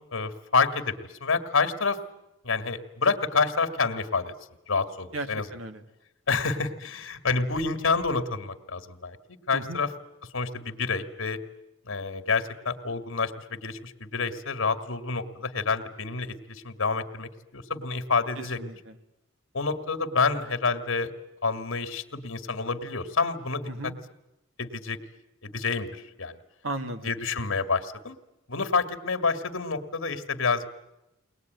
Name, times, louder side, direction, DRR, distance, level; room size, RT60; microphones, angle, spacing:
voice 1, 0.1-2.0 2.4-4.3 4.7-5.5 6.3-9.2 9.5-9.9 10.3-11.4 11.9-18.6 19.5-21.1 21.4-23.9 24.6-25.0 25.4-26.4 27.0-28.2 28.5-30.7, left 4 dB, 70° left, 7 dB, 1.9 m, -28 dB
voice 2, 5.1-5.8 9.5-9.8 18.4-18.9 23.7-23.9 26.6-27.1, right 2 dB, 70° right, 8 dB, 1.8 m, -35 dB
22.5 x 19.5 x 9.3 m, 0.94 s
head